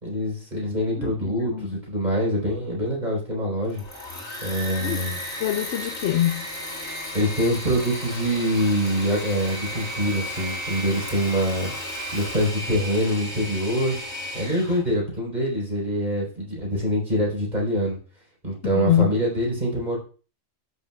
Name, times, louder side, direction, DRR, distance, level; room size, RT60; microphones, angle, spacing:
voice 1, 0.0-3.8 4.4-5.2 7.1-11.7 12.1-14.0 14.3-18.0 18.4-20.0, equal, 35° right, 4.1 m, -25 dB
voice 2, 1.0-1.7 4.8-5.0 5.4-6.5 18.6-19.1, left 11 dB, 65° left, 0.8 m, -24 dB
Engine / Mechanisms, 3.6-14.8, left 1 dB, 35° left, 3.2 m, -34 dB
14.0 x 6.4 x 2.3 m
omnidirectional pair, 1.3 m